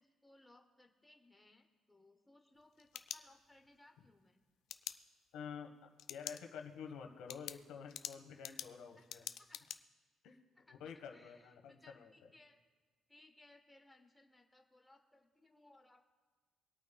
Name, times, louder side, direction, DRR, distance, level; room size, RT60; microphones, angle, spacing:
voice 1, 0.0-4.4 9.0-9.7 10.3-12.6 13.1-16.0, left 2 dB, 5° left, 3 dB, 0.8 m, -65 dB
sound 1, 2.5-3.7 4.7-4.9 6.0-6.4 6.8-6.9 7.3-9.8, left 11 dB, 70° left, 0.4 m, -46 dB
voice 2, 5.3-9.2 10.2-10.4 10.7-12.1, left 6 dB, 85° left, 4 dB, 1.3 m, -49 dB
25.5 x 8.8 x 2.3 m, 1.4 s
cardioid pair, 160°, 0 cm